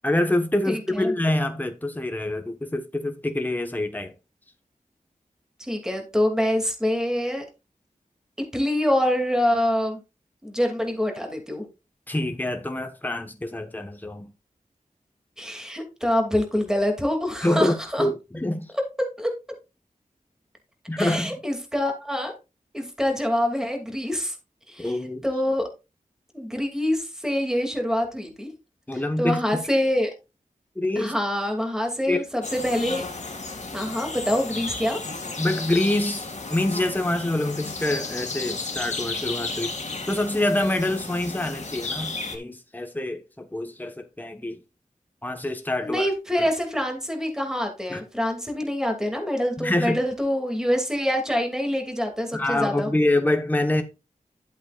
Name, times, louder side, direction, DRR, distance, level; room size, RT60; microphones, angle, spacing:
voice 1, 0.0-4.1 12.1-14.3 17.4-18.7 20.9-21.4 24.8-25.3 28.9-29.4 30.7-31.1 32.1-32.2 35.4-39.7 40.1-44.6 45.2-46.1 46.4-46.5 47.9-48.0 49.6-50.0 52.3-53.8, left 1 dB, 15° left, 1.2 m, -26 dB
voice 2, 0.7-1.1 5.6-7.4 8.5-10.0 10.4-11.7 15.4-18.1 19.2-19.3 21.0-22.3 22.7-24.3 24.7-25.7 26.3-28.5 29.2-30.1 31.0-33.0 33.7-35.0 45.8-52.9, left 1 dB, 5° right, 2.6 m, -25 dB
sound 1, 32.4-42.4, left 3 dB, 55° left, 2.2 m, -33 dB
11.5 x 8.1 x 2.4 m
wide cardioid pair, 70°, 14 cm